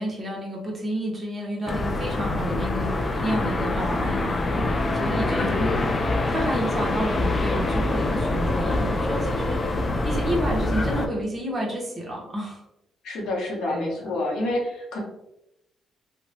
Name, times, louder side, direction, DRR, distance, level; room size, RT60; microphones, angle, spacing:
voice 1, 0.0-5.8 6.3-12.6 13.7-14.2, equal, 30° right, -2 dB, 0.9 m, -30 dB
sound 1, 1.7-11.1, left 2 dB, 30° left, 0.4 m, -25 dB
voice 2, 5.4-5.8 13.0-15.0, left 2 dB, 85° left, -2 dB, 0.9 m, -28 dB
2.9 x 2.2 x 2.7 m, 0.86 s
cardioid pair, 90°, 0 cm